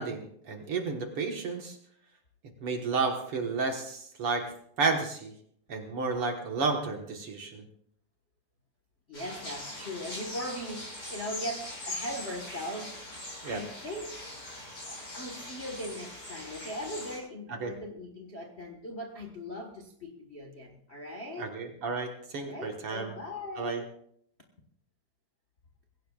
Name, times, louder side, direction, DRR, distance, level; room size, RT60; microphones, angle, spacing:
voice 1, 0.0-1.8 2.6-4.5 4.8-5.3 5.7-7.6 13.4-13.6 17.5-17.7 21.4-23.1 23.6-23.8, right 4 dB, 50° right, 3 dB, 1.9 m, -32 dB
voice 2, 9.1-14.3 14.8-21.5 22.3-23.9, equal, 75° left, 1 dB, 0.6 m, -40 dB
sound 1, 9.1-17.2, left 1 dB, 30° left, 7.4 m, -41 dB
22.0 x 17.0 x 2.4 m, 0.67 s
omnidirectional pair, 3.9 m